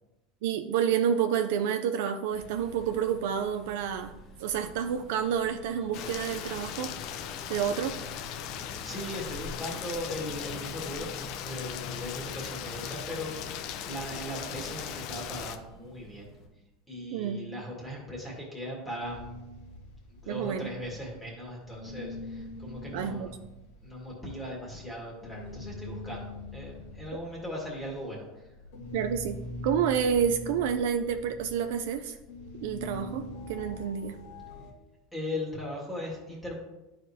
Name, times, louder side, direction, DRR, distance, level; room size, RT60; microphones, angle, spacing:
voice 1, 0.4-4.1 4.4-6.9 7.5-8.0 17.1-17.4 20.3-20.7 22.9-23.3 28.9-32.2 32.6-34.2, right 8 dB, 70° right, 6 dB, 0.4 m, -29 dB
sound 1, 2.3-16.5, left 1 dB, 30° left, 1.3 m, -48 dB
Rain, 5.9-15.6, left 9 dB, 50° left, 0.5 m, -38 dB
voice 2, 8.8-11.1 11.4-13.3 13.7-16.3 16.9-19.4 20.2-23.3 23.8-28.5 35.1-36.6, equal, 5° left, -3 dB, 1.8 m, -38 dB
sound 2, 19.0-21.4 21.6-34.7, left 1 dB, 90° left, 2.3 m, -43 dB
10.5 x 5.0 x 2.8 m, 0.98 s
supercardioid pair, 150°, 0 cm